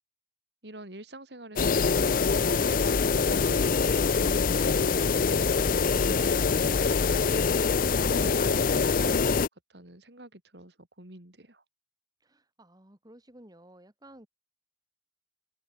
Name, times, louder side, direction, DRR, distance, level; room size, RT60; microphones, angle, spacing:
voice 1, 0.6-7.0 7.9-11.6, right 1 dB, 75° right, 4.2 m, -47 dB
sound 1, 1.6-9.5, left 5 dB, 50° left, 0.6 m, -24 dB
voice 2, 12.2-14.3, right 1 dB, 20° right, 3.0 m, -53 dB
open air
head